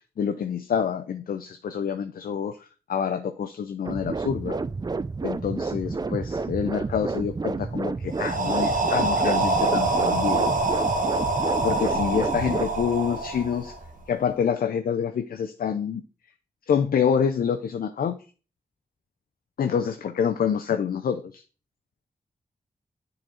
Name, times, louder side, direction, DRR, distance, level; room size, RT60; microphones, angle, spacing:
voice 1, 0.2-4.6 5.2-10.6 11.6-13.7 14.1-16.0 16.7-18.2 19.6-21.4, left 7 dB, 70° left, 8 dB, 0.5 m, -27 dB
sound 1, 3.8-12.7, right 4 dB, 25° right, 0.4 m, -30 dB
sound 2, 8.1-14.0, right 2 dB, 55° right, 1.5 m, -25 dB
7.4 x 4.0 x 4.2 m, 0.36 s
supercardioid pair, 40°, 16 cm